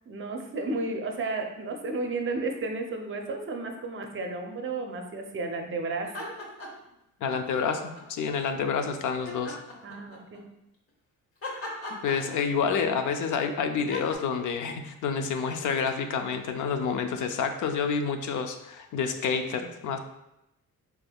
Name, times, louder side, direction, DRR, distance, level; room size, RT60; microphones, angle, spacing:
voice 1, 0.1-6.3 9.8-10.5, right 3 dB, 40° right, 4 dB, 0.5 m, -33 dB
sound 1, 6.0-6.9 7.3-8.3 9.3-10.4 11.4-12.8 13.9-14.2, left 2 dB, 40° left, 1.0 m, -39 dB
voice 2, 7.2-9.6 11.9-20.0, left 6 dB, 65° left, 7 dB, 0.5 m, -28 dB
4.4 x 3.3 x 2.3 m, 0.87 s
cardioid pair, 95°, 33 cm